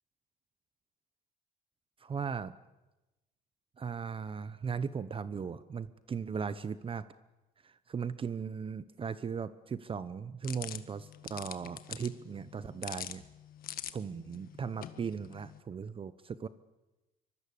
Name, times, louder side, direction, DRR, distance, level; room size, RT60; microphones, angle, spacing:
voice 1, 2.0-2.5 3.8-7.0 7.6-13.2 13.9-16.5, right 6 dB, 30° right, 14 dB, 0.9 m, -38 dB
sound 1, 10.4-15.6, left 11 dB, 60° left, 1.7 m, -45 dB
24.5 x 23.0 x 8.5 m, 1.0 s
cardioid pair, 110°, 17 cm